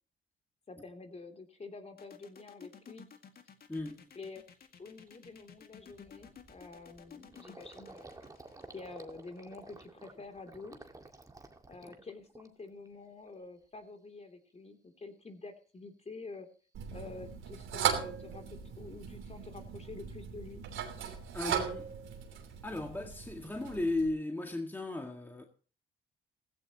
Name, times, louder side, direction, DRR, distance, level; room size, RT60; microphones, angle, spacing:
voice 1, 0.7-3.1 4.1-4.4 4.8-8.1 8.7-10.8 11.7-16.5 16.9-20.6, left 3 dB, 35° left, 3.1 m, -48 dB
sound 1, 2.0-9.7, left 7 dB, 50° left, 2.0 m, -54 dB
Gurgling, 3.2-3.3 3.8-4.0 4.4-4.6 4.8-12.9 13.2-13.8, right 2 dB, 15° right, 2.0 m, -54 dB
voice 2, 3.7-4.0 21.3-21.9 22.6-25.4, left 2 dB, 10° left, 2.0 m, -35 dB
sound 2, 16.7-24.1, right 8 dB, 80° right, 3.1 m, -38 dB
16.0 x 15.5 x 3.0 m
cardioid pair, 90°, 20 cm